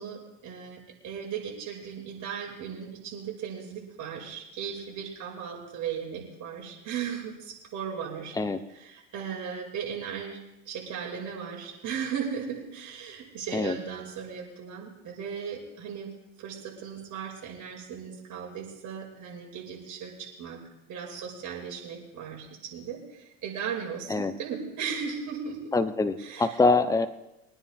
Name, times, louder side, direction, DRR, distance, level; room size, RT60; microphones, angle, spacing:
voice 1, 0.0-8.4 8.7-10.4 10.7-16.1 16.4-20.6 20.9-25.8 26.2-26.5, right 7 dB, 50° right, -1 dB, 6.0 m, -37 dB
voice 2, 25.7-27.1, left 3 dB, 10° left, 10 dB, 1.0 m, -24 dB
24.0 x 9.8 x 3.6 m, 0.90 s
hypercardioid pair, 90°, 38 cm